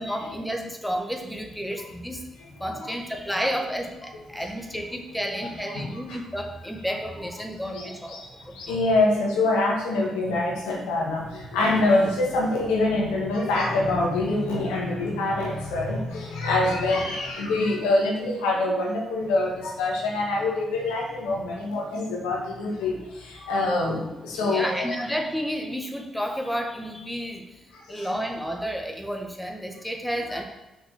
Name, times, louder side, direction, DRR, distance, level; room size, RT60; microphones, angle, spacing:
voice 1, 0.0-2.2 2.6-8.8 24.3-30.4, equal, 5° left, 3 dB, 1.8 m, -31 dB
voice 2, 5.7-6.2 7.7-8.2 8.5-25.0 27.7-28.2 30.2-30.4, left 2 dB, 85° left, -2 dB, 2.0 m, -25 dB
6.5 x 5.9 x 6.7 m, 1.0 s
hypercardioid pair, 45°, 0 cm